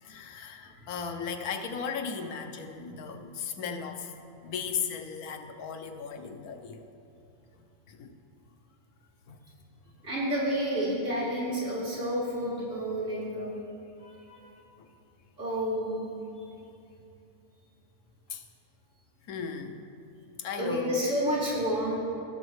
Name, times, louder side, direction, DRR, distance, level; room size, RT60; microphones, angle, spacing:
voice 1, 0.0-4.2 4.4-6.8 7.9-8.1 9.3-9.4 14.8-14.9 18.3-18.4 19.3-19.8 20.4-21.0, left 6 dB, 85° left, 6 dB, 1.2 m, -36 dB
voice 2, 10.0-13.5 14.0-14.5 15.4-16.1 20.6-22.0, equal, 55° right, -9 dB, 3.0 m, -30 dB
16.5 x 6.3 x 3.1 m, 2.7 s
omnidirectional pair, 1.5 m